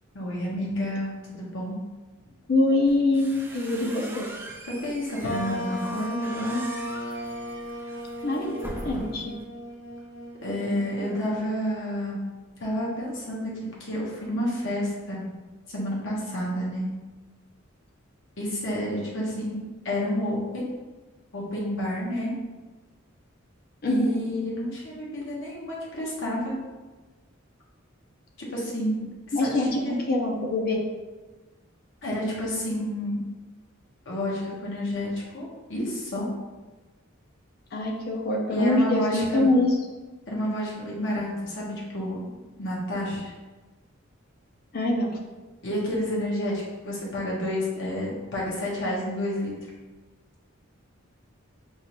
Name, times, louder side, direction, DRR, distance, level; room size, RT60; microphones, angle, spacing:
voice 1, 0.1-1.8 4.7-6.6 10.4-12.2 12.6-13.5 13.8-15.3 15.7-16.9 18.4-19.5 19.8-20.7 21.3-22.3 23.8-26.5 28.4-29.0 29.4-30.0 32.0-33.2 34.1-36.2 38.5-39.5 40.3-42.2 42.5-43.3 45.6-49.5, equal, 65° left, -5 dB, 1.1 m, -30 dB
voice 2, 2.5-4.3 8.2-9.3 23.8-24.2 29.3-30.8 37.7-39.8 44.7-45.2, left 2 dB, 50° left, 1 dB, 0.5 m, -24 dB
sound 1, 2.9-9.4, right 1 dB, 10° right, 0.4 m, -41 dB
sound 2, 5.2-11.9, equal, 85° left, 1.0 m, -36 dB
4.7 x 2.4 x 2.9 m, 1.2 s
head